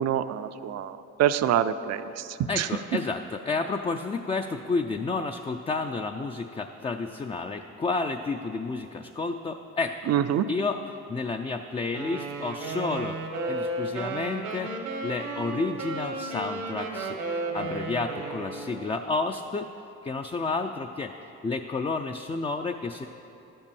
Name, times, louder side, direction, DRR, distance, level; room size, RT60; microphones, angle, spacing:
voice 1, 0.0-2.7 10.1-10.5, right 10 dB, 60° right, 12 dB, 0.5 m, -26 dB
voice 2, 2.5-10.0 10.5-10.8 11.1-14.7 15.0-19.7 20.0-21.1 21.4-23.1, left 3 dB, 20° left, 5 dB, 0.3 m, -31 dB
Wind instrument woodwind instrument, 11.9-18.9, right 2 dB, 85° right, 1.4 m, -33 dB
11.0 x 5.4 x 7.0 m, 2.9 s
cardioid pair, 90°, 30 cm